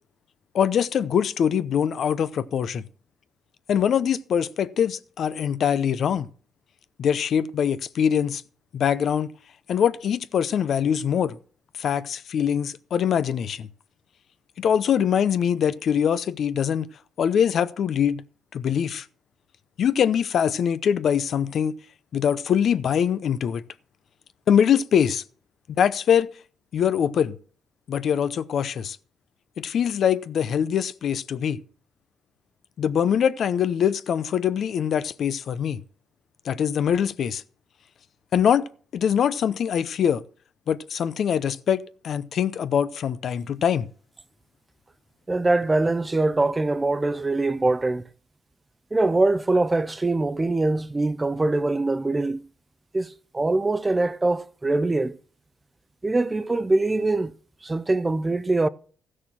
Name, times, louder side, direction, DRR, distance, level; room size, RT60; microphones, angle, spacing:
voice 1, 0.5-2.8 3.7-6.3 7.0-8.4 8.7-9.3 9.7-11.4 11.8-13.7 14.6-16.9 17.2-18.2 18.5-19.1 19.8-21.7 22.1-23.6 24.5-25.2 25.7-26.3 26.7-27.4 27.9-29.0 29.6-31.6 32.8-35.8 36.4-37.4 38.3-38.6 38.9-40.2 40.7-43.9, left 8 dB, 60° left, 0.7 m, -23 dB
voice 2, 45.3-48.1 48.9-52.4 52.9-55.2 56.0-57.3 57.6-58.7, right 2 dB, 20° right, 0.5 m, -23 dB
14.0 x 6.5 x 5.9 m
cardioid pair, 90°, 0 cm